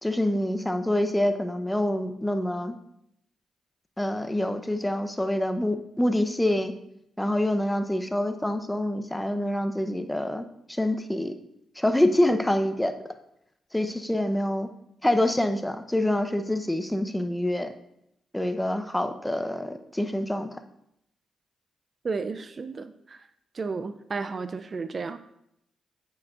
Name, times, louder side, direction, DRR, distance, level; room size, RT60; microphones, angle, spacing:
voice 1, 0.0-2.8 4.0-6.7 7.2-11.3 11.8-12.9 13.7-14.7 15.0-17.7 18.3-20.5, left 1 dB, 10° left, 8 dB, 0.7 m, -26 dB
voice 2, 22.0-23.3 23.5-25.2, right 4 dB, 45° right, 11 dB, 0.4 m, -33 dB
8.6 x 7.6 x 2.5 m, 0.78 s
supercardioid pair, 50°, 0 cm